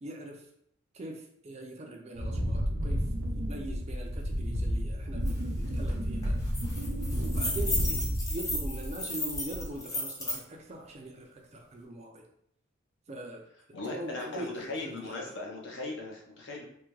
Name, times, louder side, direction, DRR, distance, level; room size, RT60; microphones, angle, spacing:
voice 1, 0.0-0.4 0.9-3.0 3.4-6.4 7.1-7.8 8.3-12.2 13.1-15.3, right 1 dB, 30° right, 1 dB, 0.4 m, -42 dB
Wind, 2.1-9.0 9.3-9.8, equal, 85° right, 0.7 m, -31 dB
sound 1, 5.3-5.4 5.7-5.9 6.2-10.4, left 1 dB, 15° left, 0.6 m, -34 dB
voice 2, 13.7-16.6, left 2 dB, 60° left, -2 dB, 0.7 m, -38 dB
3.4 x 2.1 x 3.0 m, 0.70 s
head